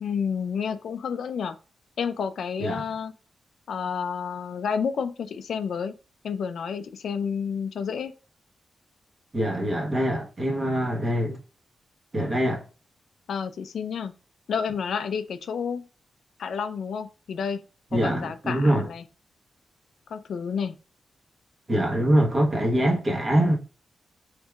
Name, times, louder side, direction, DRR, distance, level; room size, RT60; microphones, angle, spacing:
voice 1, 0.0-1.6 2.0-3.1 3.7-5.9 6.2-8.1 13.3-14.1 14.5-15.8 16.4-17.6 17.9-19.0 20.1-20.8, left 6 dB, 80° left, 0.4 m, -30 dB
voice 2, 9.3-11.4 12.1-12.6 17.9-18.9 21.7-23.6, right 1 dB, 25° right, 1.0 m, -23 dB
4.4 x 3.3 x 2.3 m
wide cardioid pair, 145°, 0 cm